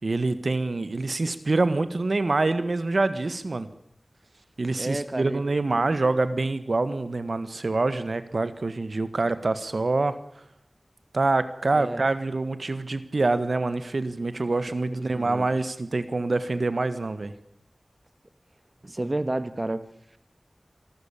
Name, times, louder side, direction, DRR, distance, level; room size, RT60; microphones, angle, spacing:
voice 1, 0.0-3.7 4.6-10.2 11.1-17.3, right 3 dB, 70° right, 12 dB, 1.7 m, -26 dB
voice 2, 4.8-5.4 11.7-12.0 14.9-15.5 18.8-20.2, right 1 dB, 40° right, 12 dB, 1.5 m, -31 dB
26.5 x 12.5 x 8.9 m, 0.73 s
wide cardioid pair, 50°, 0 cm